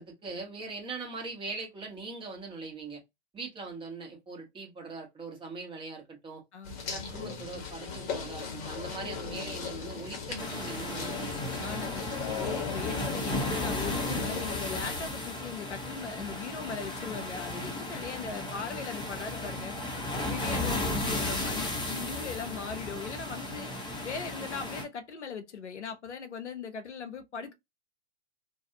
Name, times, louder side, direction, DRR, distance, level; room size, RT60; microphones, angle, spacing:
voice 1, 0.0-3.0 3.3-6.4 6.9-11.6, right 3 dB, 15° right, 1.1 m, -41 dB
sound 1, 6.6-15.1, left 5 dB, 40° left, 1.0 m, -37 dB
sound 2, 10.4-24.8, left 1 dB, 15° left, 0.9 m, -35 dB
voice 2, 11.6-19.8 20.1-27.5, left 6 dB, 90° left, 0.6 m, -39 dB
2.6 x 2.3 x 2.7 m
hypercardioid pair, 105°, 34 cm